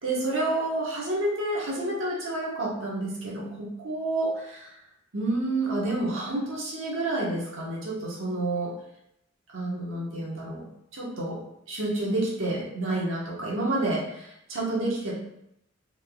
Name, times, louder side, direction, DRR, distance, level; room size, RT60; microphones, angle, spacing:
voice 1, 0.0-4.8 5.1-8.7 9.5-10.7 10.9-11.4 11.7-15.1, right 2 dB, 70° right, -4 dB, 1.3 m, -29 dB
4.3 x 3.7 x 2.3 m, 0.79 s
head